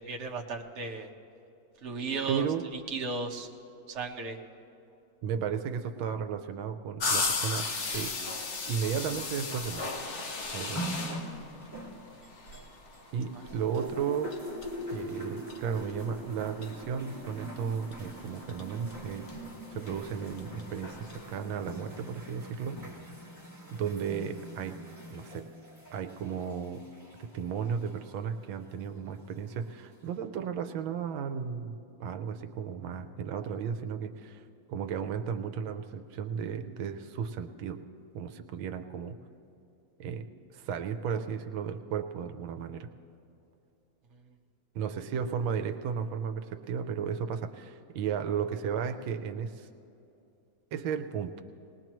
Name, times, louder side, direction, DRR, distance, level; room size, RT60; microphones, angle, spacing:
voice 1, 0.1-1.1 1.8-2.4 2.7-3.5 3.9-4.4, right 4 dB, 45° right, 1 dB, 1.2 m, -35 dB
voice 2, 2.3-2.7 5.2-8.1 8.7-9.9 10.5-11.0 13.1-14.4 14.9-19.3 19.7-22.8 23.7-24.8 25.1-25.5 25.9-26.9 27.2-34.4 34.7-37.8 38.1-39.2 40.0-42.9 44.7-49.7 50.7-51.4, right 7 dB, 85° right, 8 dB, 1.5 m, -34 dB
sound 1, 7.0-21.3, left 3 dB, 45° left, 1.1 m, -38 dB
sound 2, 10.7-13.1 13.4-28.2 29.0-29.1, equal, 10° right, 2.1 m, -43 dB
sound 3, 19.3-21.1 21.4-22.9, left 3 dB, 70° left, 2.0 m, -50 dB
20.0 x 20.0 x 3.1 m, 2.8 s
omnidirectional pair, 2.1 m